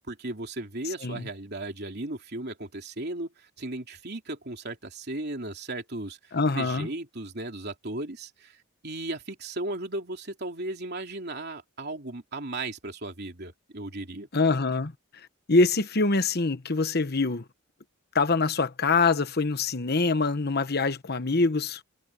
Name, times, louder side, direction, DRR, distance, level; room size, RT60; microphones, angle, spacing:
voice 1, 0.1-6.2 6.5-8.6 8.8-14.3, right 2 dB, 50° right, 3.3 m, -36 dB
voice 2, 6.3-6.9 14.3-14.9 15.5-17.4 18.1-21.9, left 3 dB, 50° left, 1.1 m, -24 dB
head